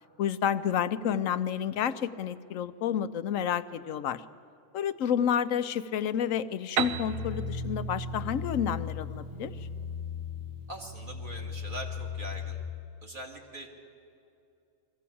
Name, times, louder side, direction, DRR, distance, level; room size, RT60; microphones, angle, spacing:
voice 1, 0.2-4.2 4.7-9.7, left 8 dB, 80° left, 13 dB, 1.1 m, -30 dB
Piano, 6.8-10.4, right 8 dB, 85° right, 1.2 m, -36 dB
sound 1, 6.9-12.6, left 4 dB, 60° right, 8.0 m, -37 dB
voice 2, 10.7-12.6 13.0-13.7, right 1 dB, 40° right, 1 dB, 2.4 m, -42 dB
21.5 x 15.0 x 8.5 m, 2.6 s
omnidirectional pair, 1.4 m